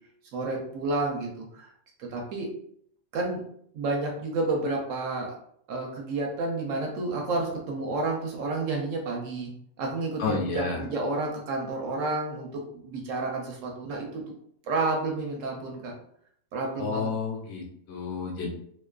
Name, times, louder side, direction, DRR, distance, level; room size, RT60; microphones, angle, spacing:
voice 1, 0.3-1.7 2.0-2.5 3.1-3.4 3.7-5.4 5.7-9.5 9.8-14.2 14.7-15.9 16.5-17.1, right 2 dB, 75° right, 0 dB, 0.9 m, -30 dB
voice 2, 10.2-10.8 16.8-18.5, left 4 dB, 65° left, 0 dB, 0.9 m, -31 dB
2.5 x 2.3 x 2.2 m, 0.66 s
omnidirectional pair, 1.4 m